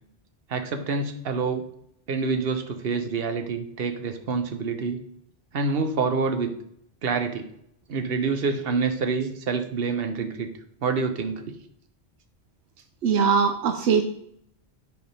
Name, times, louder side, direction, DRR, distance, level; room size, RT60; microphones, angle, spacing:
voice 1, 0.5-1.6 2.1-5.0 5.5-6.5 7.0-7.5 7.9-10.5 10.8-11.5, right 4 dB, 60° right, 7 dB, 1.1 m, -27 dB
voice 2, 13.0-14.0, right 6 dB, 80° right, 6 dB, 0.9 m, -21 dB
9.3 x 3.6 x 5.4 m, 0.71 s
omnidirectional pair, 1.1 m